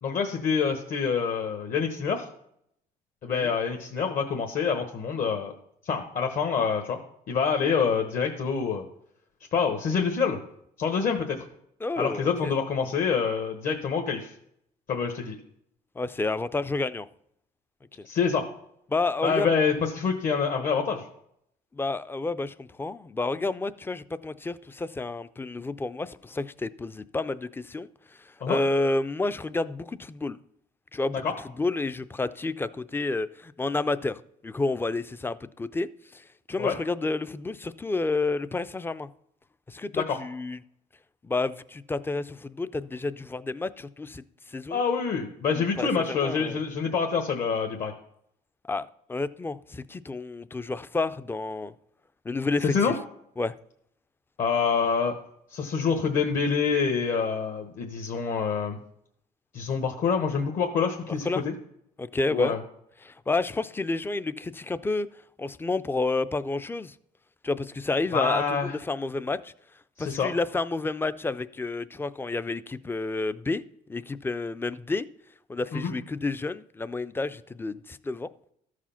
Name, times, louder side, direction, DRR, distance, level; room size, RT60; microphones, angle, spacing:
voice 1, 0.0-2.3 3.2-5.5 5.8-7.0 7.3-8.8 9.5-10.4 10.8-11.4 12.0-14.3 14.9-15.4 18.0-18.4 19.2-21.0 28.4-28.6 31.2-31.3 36.6-36.8 39.9-40.2 44.7-47.9 52.7-52.9 54.4-55.1 55.5-58.8 59.5-61.5 62.3-62.6 68.1-68.7 70.0-70.3 75.7-75.9, left 6 dB, 55° left, 3 dB, 1.2 m, -26 dB
voice 2, 11.8-12.5 16.0-17.1 18.9-19.6 21.7-27.9 28.2-30.4 30.9-31.2 31.6-39.1 39.7-40.6 41.2-44.8 45.5-46.6 48.6-51.7 52.2-52.9 53.4-53.6 61.2-61.4 62.0-62.6 63.0-65.1 65.4-66.9 67.4-69.5 70.0-73.6 73.9-75.1 75.5-78.3, left 3 dB, 15° left, 15 dB, 0.4 m, -30 dB
13.5 x 4.9 x 5.7 m, 0.74 s
cardioid pair, 110°, 17 cm